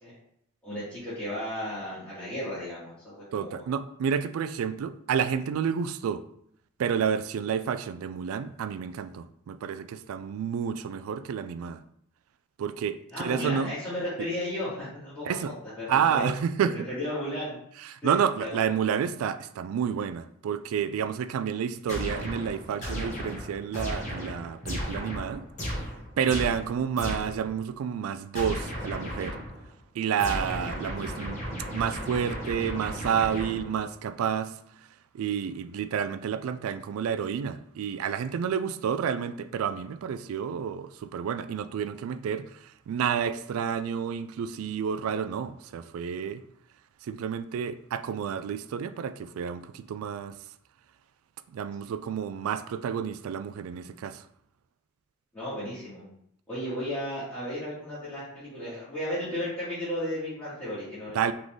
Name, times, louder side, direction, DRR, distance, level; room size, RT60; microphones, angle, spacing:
voice 1, 0.6-3.6 13.1-16.3 16.7-17.5 18.0-18.6 55.3-56.0 56.5-61.3, left 1 dB, 10° left, -15 dB, 1.7 m, -34 dB
voice 2, 3.3-6.2 6.8-11.8 12.6-13.7 14.2-14.3 15.3-15.5 15.9-16.9 17.8-25.4 26.2-29.4 29.9-31.4 31.7-34.6 35.1-46.4 47.0-50.4 51.5-54.2 61.1-61.3, right 7 dB, 85° right, 13 dB, 0.3 m, -30 dB
sound 1, 21.9-27.5 28.3-29.6 30.2-33.9, equal, 35° left, 1.5 m, -35 dB
3.9 x 3.7 x 3.2 m, 0.69 s
head